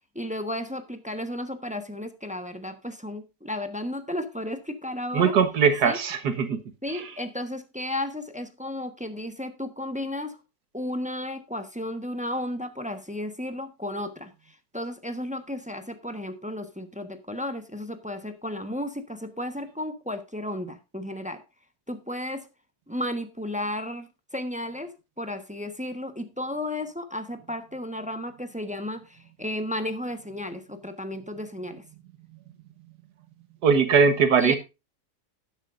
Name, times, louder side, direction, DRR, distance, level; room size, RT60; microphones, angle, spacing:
voice 1, 0.1-5.4 5.8-6.0 6.8-10.4 10.7-21.4 21.9-22.5 22.9-24.1 24.3-31.8 34.4-34.5, left 1 dB, 5° right, 0.9 m, -33 dB
voice 2, 5.1-6.6 6.9-7.1 33.6-34.6, right 6 dB, 75° right, 1.8 m, -21 dB
12.0 x 10.0 x 2.5 m
omnidirectional pair, 1.8 m